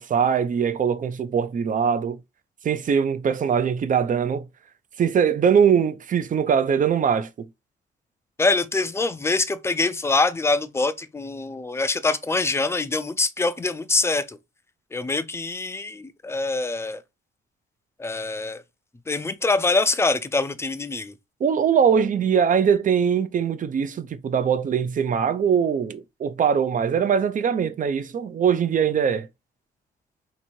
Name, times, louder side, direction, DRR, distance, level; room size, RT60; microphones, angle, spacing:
voice 1, 0.0-2.2 2.6-4.5 5.0-7.5 21.4-29.3, right 7 dB, 40° right, 0.5 m, -22 dB
voice 2, 8.4-14.4 14.9-17.0 18.0-18.6 19.1-21.1, left 3 dB, 15° left, 0.5 m, -24 dB
3.0 x 2.6 x 4.3 m
cardioid pair, 85°, 20 cm